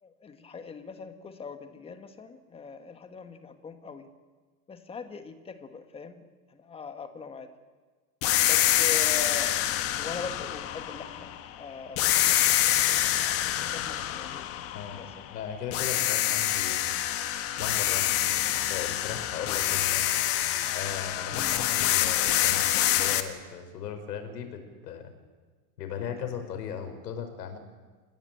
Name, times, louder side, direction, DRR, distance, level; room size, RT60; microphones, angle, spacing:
voice 1, 0.0-4.1 4.7-6.2 6.5-7.5 8.4-9.5 10.0-13.0 13.7-14.5 14.9-15.1 21.3-21.5, left 5 dB, 10° left, 9 dB, 1.5 m, -41 dB
sound 1, 8.2-11.5 12.0-15.3 15.7-23.2, left 13 dB, 30° left, 1.5 m, -26 dB
voice 2, 15.3-16.9 17.6-20.2 20.7-22.7 23.0-25.1 25.8-27.6, left 7 dB, 80° left, 7 dB, 5.3 m, -37 dB
29.0 x 16.5 x 9.2 m, 1.4 s
supercardioid pair, 155°, 48 cm